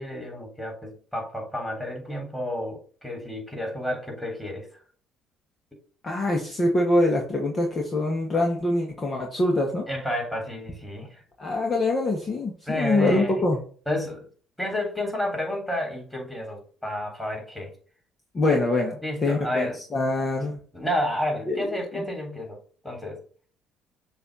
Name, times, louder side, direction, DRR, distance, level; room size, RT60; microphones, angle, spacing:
voice 1, 0.0-4.7 9.9-11.2 12.7-13.4 13.9-14.3 14.6-17.7 19.0-19.8 20.7-22.6 22.8-23.2, left 1 dB, 5° left, 1 dB, 3.4 m, -30 dB
voice 2, 6.0-9.9 11.4-13.6 18.3-20.6 21.5-22.0, left 2 dB, 35° left, 1 dB, 1.5 m, -24 dB
6.8 x 2.8 x 5.2 m, 0.42 s
supercardioid pair, 70°, 0 cm